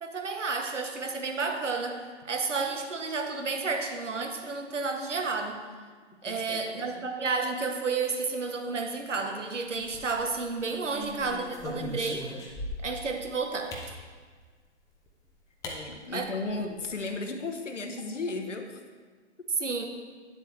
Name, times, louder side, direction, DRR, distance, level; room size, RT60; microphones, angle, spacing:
voice 1, 0.0-5.6 6.2-12.3 12.8-13.8 16.1-16.7 19.5-19.8, right 4 dB, 85° right, 4 dB, 1.2 m, -31 dB
voice 2, 6.3-7.0 10.7-11.9 12.3-12.4 15.7-18.8 19.6-19.7, left 3 dB, 90° left, 5 dB, 1.2 m, -36 dB
sound 1, 9.8-10.5 11.0-13.0 13.7-14.0 15.1-15.2 15.6-15.8 16.1-16.2 16.5-16.9, left 1 dB, 10° left, 0.8 m, -39 dB
9.8 x 7.4 x 3.4 m, 1.5 s
hypercardioid pair, 135°, 36 cm